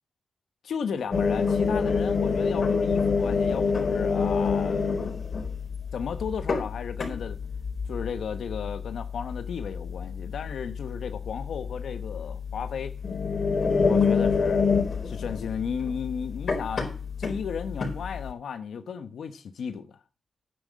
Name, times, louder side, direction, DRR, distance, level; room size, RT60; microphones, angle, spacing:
voice 1, 0.6-5.3 5.9-7.4 7.9-13.0 13.8-14.7 15.0-16.9 17.2-19.9, left 6 dB, 90° left, 1.1 m, -34 dB
sound 1, 1.1-18.3, left 5 dB, 65° left, 4.4 m, -28 dB
9.9 x 9.8 x 5.4 m
cardioid pair, 45°, 0 cm